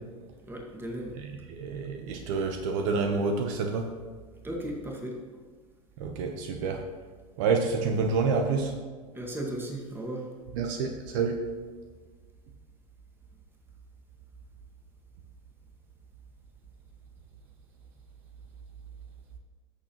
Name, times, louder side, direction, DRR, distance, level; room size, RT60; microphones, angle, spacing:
voice 1, 0.4-1.2 4.4-5.2 9.1-10.3, right 1 dB, 10° right, -1 dB, 1.9 m, -36 dB
voice 2, 1.1-3.9 6.0-6.8 7.4-8.8 10.5-11.4, right 4 dB, 60° right, 4 dB, 0.9 m, -28 dB
14.5 x 6.5 x 3.0 m, 1.5 s
hypercardioid pair, 100°, 18 cm